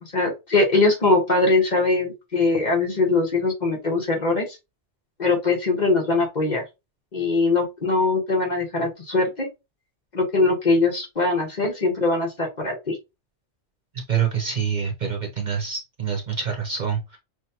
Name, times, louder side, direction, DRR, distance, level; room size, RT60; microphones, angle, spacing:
voice 1, 0.0-4.6 5.2-6.6 7.1-9.5 10.1-13.0, left 3 dB, 40° left, 1 dB, 1.2 m, -21 dB
voice 2, 14.1-17.2, right 7 dB, 40° right, 1 dB, 0.9 m, -26 dB
6.1 x 2.2 x 2.8 m, 0.24 s
omnidirectional pair, 1.2 m